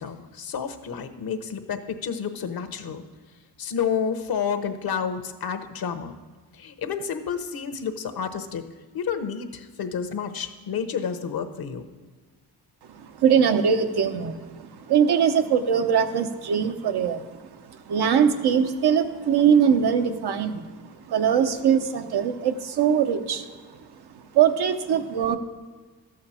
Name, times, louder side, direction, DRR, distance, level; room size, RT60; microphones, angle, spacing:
voice 1, 0.0-3.0 3.6-6.1 6.5-8.6 8.9-11.8, left 7 dB, 65° left, 8 dB, 1.0 m, -30 dB
voice 2, 12.9-17.4 17.9-23.5 23.7-23.8 24.3-25.4, right 7 dB, 80° right, 6 dB, 0.9 m, -22 dB
13.0 x 7.7 x 4.3 m, 1.4 s
cardioid pair, 90°, 39 cm